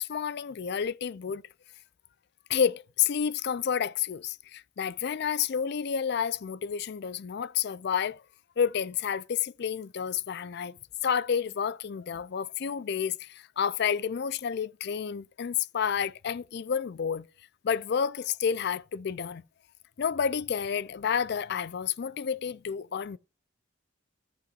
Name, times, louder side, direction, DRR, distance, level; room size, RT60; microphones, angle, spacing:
voice 1, 0.0-1.4 2.5-8.2 8.6-10.8 11.0-17.3 17.6-19.4 20.0-23.2, left 7 dB, 55° left, 0.4 m, -30 dB
13.5 x 8.7 x 2.4 m
head